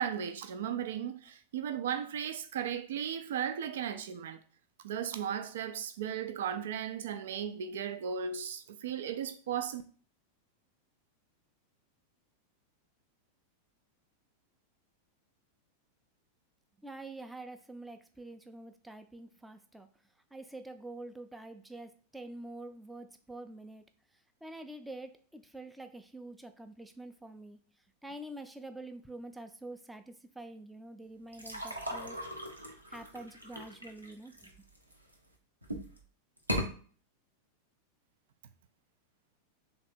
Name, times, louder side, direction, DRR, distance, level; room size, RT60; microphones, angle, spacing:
voice 1, 0.0-4.4 4.8-9.8, right 8 dB, 60° right, 0.4 m, -36 dB
voice 2, 16.8-19.9 20.3-23.8 24.4-27.6 28.0-32.2 32.9-34.5, right 2 dB, 5° right, 0.5 m, -46 dB
sound 1, 31.3-35.1 35.6-36.0 36.4-36.7, equal, 85° right, 0.7 m, -38 dB
3.5 x 2.9 x 4.1 m
figure-of-eight pair, 90°, 0 cm